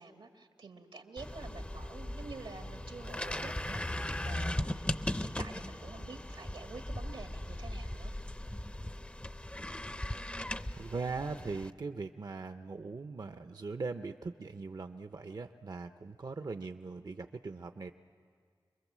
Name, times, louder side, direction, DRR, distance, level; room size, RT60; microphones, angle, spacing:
voice 1, 0.0-8.1, right 4 dB, 85° right, 5 dB, 1.8 m, -49 dB
sound 1, 1.2-11.7, left 1 dB, 15° left, 0.6 m, -38 dB
voice 2, 10.7-17.9, right 4 dB, 55° right, 8 dB, 0.6 m, -40 dB
27.0 x 22.0 x 7.4 m, 2.1 s
wide cardioid pair, 70°, 8 cm